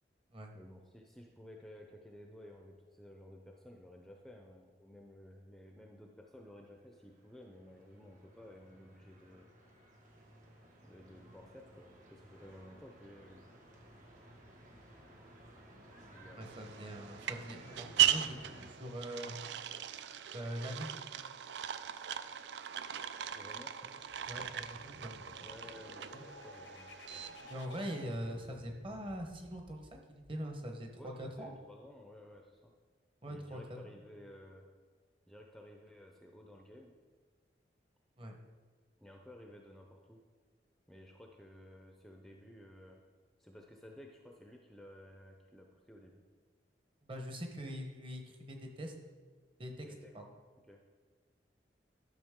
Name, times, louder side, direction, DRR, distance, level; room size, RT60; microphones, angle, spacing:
voice 1, 0.5-9.5 10.8-13.4 15.9-16.7 23.3-23.8 25.4-27.2 31.0-32.7 33.3-34.7 35.3-36.9 39.0-40.2 40.9-43.0 43.4-46.2 49.8-50.1 50.7-50.8, left 1 dB, ahead, 1 dB, 0.6 m, -54 dB
sound 1, 6.6-18.7, right 1 dB, 45° right, 1.5 m, -57 dB
voice 2, 16.4-19.4 20.3-20.9 24.3-25.2 26.1-26.2 27.5-31.5 33.2-34.0 38.2-38.4 47.0-48.9 49.6-49.9 50.1-50.2, equal, 30° right, 3 dB, 1.0 m, -43 dB
sound 2, 16.4-27.7, right 11 dB, 70° right, 0.4 m, -38 dB
sound 3, 24.1-31.6, left 1 dB, 90° left, 1.0 m, -55 dB
12.0 x 6.1 x 3.7 m, 1.5 s
head